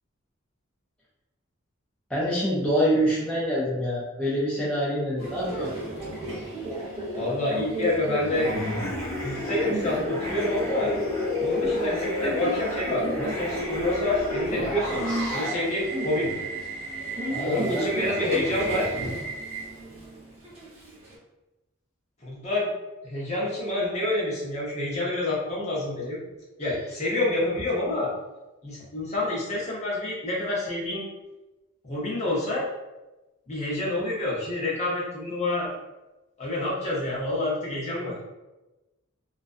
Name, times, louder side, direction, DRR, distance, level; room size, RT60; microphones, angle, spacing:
voice 1, 2.1-5.7 17.3-17.8, equal, 5° left, -9 dB, 0.4 m, -26 dB
Subway metro underground, 5.2-21.1, right 2 dB, 30° right, 0.8 m, -33 dB
voice 2, 7.1-8.5 9.2-10.9 11.4-16.3 17.4-18.9 22.2-22.7 23.0-26.2 26.6-28.1 28.6-31.1 31.8-32.7 33.5-35.8 36.4-38.2, left 2 dB, 35° left, -6 dB, 0.8 m, -28 dB
sound 1, 8.3-15.5, left 1 dB, 90° left, 0.9 m, -31 dB
2.4 x 2.2 x 2.5 m, 1.0 s
head